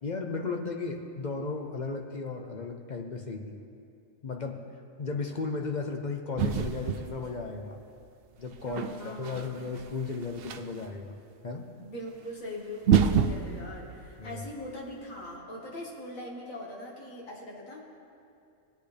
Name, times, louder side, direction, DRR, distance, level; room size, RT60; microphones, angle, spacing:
voice 1, 0.0-3.6 4.2-4.6 5.0-7.8 8.4-11.2 11.4-11.7 14.2-14.4, left 4 dB, 40° left, 3 dB, 0.7 m, -35 dB
sound 1, 6.4-7.6 8.4-10.9 12.3-12.4 12.8-14.9, right 7 dB, 60° right, 0.6 m, -28 dB
voice 2, 8.7-9.5 11.8-17.8, left 1 dB, 75° left, -2 dB, 2.2 m, -41 dB
19.5 x 8.4 x 3.4 m, 2.5 s
omnidirectional pair, 1.4 m